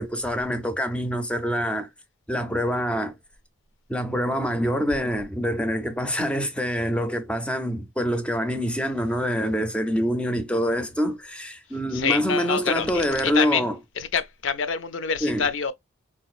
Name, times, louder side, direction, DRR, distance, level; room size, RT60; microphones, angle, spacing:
voice 1, 0.0-1.9 2.3-3.2 3.9-13.8 15.2-15.5, equal, 5° left, 0.4 m, -25 dB
voice 2, 11.9-13.7 14.0-15.7, left 6 dB, 65° left, 0.5 m, -26 dB
4.0 x 2.4 x 2.4 m
head